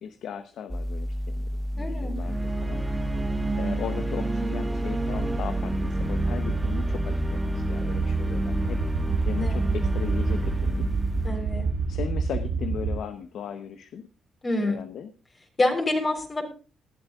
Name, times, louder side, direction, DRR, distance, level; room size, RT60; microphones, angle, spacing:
voice 1, 0.0-2.8 3.6-8.8 9.3-10.9 11.9-14.1 14.6-15.1, left 8 dB, 70° left, 10 dB, 0.9 m, -37 dB
sound 1, 0.7-11.3, equal, 5° left, 0.7 m, -31 dB
voice 2, 1.8-2.1 9.4-9.7 11.2-11.7 14.4-14.8 15.6-16.5, left 2 dB, 30° left, 2 dB, 3.8 m, -27 dB
sound 2, 2.2-12.2, right 2 dB, 15° right, 1.1 m, -31 dB
sound 3, 5.4-13.0, right 4 dB, 70° right, 1.6 m, -30 dB
19.0 x 11.5 x 2.4 m, 0.35 s
cardioid pair, 90°, 0 cm